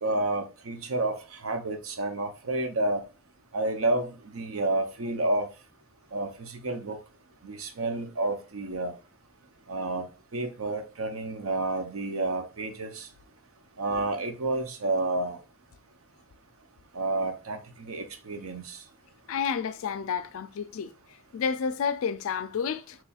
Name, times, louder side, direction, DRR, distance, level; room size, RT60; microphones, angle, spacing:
voice 1, 0.0-3.0 3.5-5.5 6.1-7.0 7.4-8.9 9.7-13.1 13.8-15.4 16.9-18.8, right 2 dB, 70° right, 0.6 m, -30 dB
voice 2, 19.3-20.9 21.3-23.0, left 6 dB, 65° left, 0.3 m, -30 dB
4.1 x 3.0 x 2.3 m
head